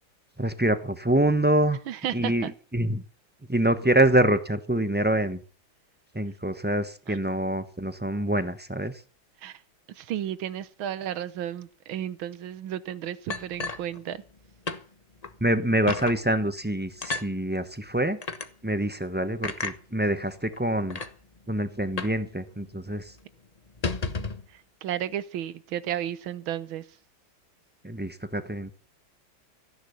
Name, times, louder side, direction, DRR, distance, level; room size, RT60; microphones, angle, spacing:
voice 1, 0.4-1.8 2.1-3.0 3.5-5.4 6.1-9.0 15.4-18.2 18.6-21.0 21.5-23.1 27.8-28.7, right 1 dB, 10° right, 0.4 m, -25 dB
voice 2, 1.9-2.5 7.1-7.2 9.4-9.6 9.9-14.2 24.5-27.0, right 11 dB, 85° right, 1.8 m, -33 dB
sound 1, 13.3-14.4 14.7-14.8 15.2-15.3 15.9-16.2 17.0-17.3 18.2-18.5 19.4-19.8 20.5-20.6 20.9-21.1 22.0-22.2 22.5-22.6 22.9-23.1 23.7-24.4, left 3 dB, 30° left, 0.8 m, -32 dB
15.5 x 10.5 x 7.0 m
omnidirectional pair, 2.1 m